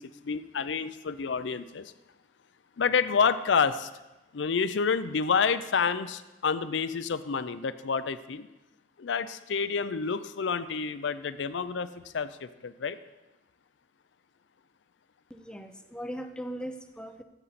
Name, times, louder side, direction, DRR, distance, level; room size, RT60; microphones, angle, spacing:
voice 1, 0.0-1.9 2.8-3.9 4.3-8.5 9.0-13.0, left 5 dB, 70° left, 14 dB, 0.5 m, -29 dB
voice 2, 15.3-17.2, equal, 5° left, 7 dB, 0.6 m, -39 dB
13.5 x 7.9 x 4.1 m, 1.0 s
head